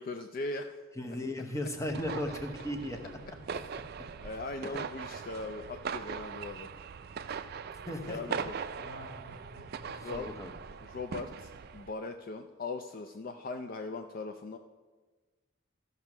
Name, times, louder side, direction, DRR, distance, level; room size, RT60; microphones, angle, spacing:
voice 1, 0.0-0.8 3.5-3.6 4.2-6.7 8.1-8.5 9.9-10.3 10.8-14.6, left 3 dB, 40° left, 6 dB, 0.4 m, -39 dB
voice 2, 1.0-3.0 7.9-8.2 10.0-10.5, left 1 dB, 15° left, 4 dB, 0.8 m, -36 dB
sound 1, 1.9-11.9, right 6 dB, 45° right, 0.3 m, -41 dB
Laughter, 2.9-7.1 8.7-11.7 12.0-12.1, equal, 65° left, 3.0 m, -54 dB
14.0 x 5.4 x 5.9 m, 1.3 s
head